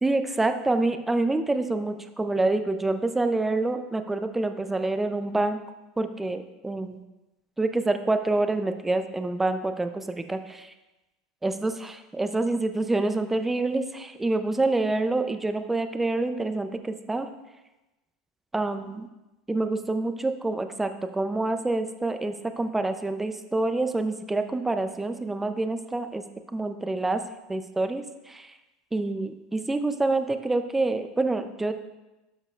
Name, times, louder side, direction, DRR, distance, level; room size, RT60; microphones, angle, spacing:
voice 1, 0.0-5.6 6.0-7.0 7.6-10.7 11.4-17.3 18.5-19.1 19.5-26.2 26.5-27.2 27.5-28.5 28.9-31.7, right 2 dB, 10° right, 8 dB, 0.5 m, -27 dB
12.0 x 5.3 x 2.4 m, 1.0 s
supercardioid pair, 110°, 2 cm